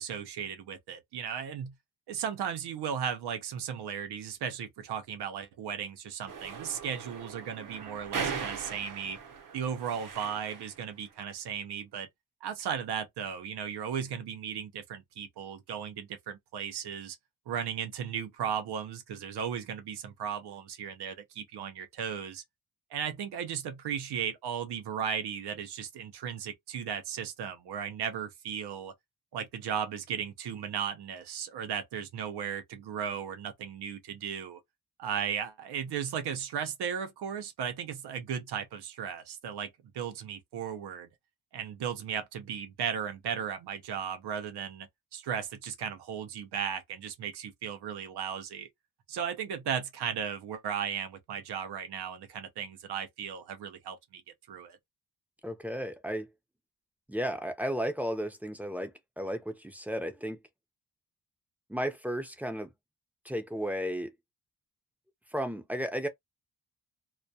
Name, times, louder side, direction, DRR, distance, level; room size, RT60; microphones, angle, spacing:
voice 1, 0.0-1.7 2.1-9.2 9.5-12.1 12.4-17.2 17.5-22.4 22.9-28.9 29.3-34.6 35.0-41.1 41.5-48.7 49.1-54.2 54.5-54.8, right 8 dB, 90° right, 0.7 m, -36 dB
sound 1, 6.3-10.8, right 6 dB, 55° right, 0.8 m, -39 dB
voice 2, 55.4-56.3 57.1-60.4 61.7-62.7 63.2-64.2 65.3-66.1, equal, 5° right, 0.4 m, -34 dB
2.2 x 2.2 x 2.7 m
cardioid pair, 115°, 39 cm